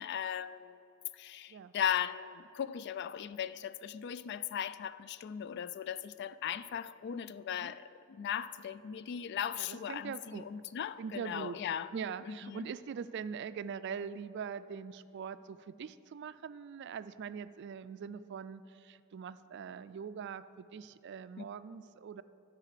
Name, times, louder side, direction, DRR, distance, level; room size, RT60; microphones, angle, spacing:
voice 1, 0.0-11.9 12.2-12.7, left 9 dB, 55° left, 15 dB, 0.3 m, -38 dB
voice 2, 9.6-10.4 11.0-11.6 11.9-22.2, right 6 dB, 60° right, 14 dB, 0.3 m, -42 dB
13.0 x 4.9 x 6.6 m, 2.6 s
head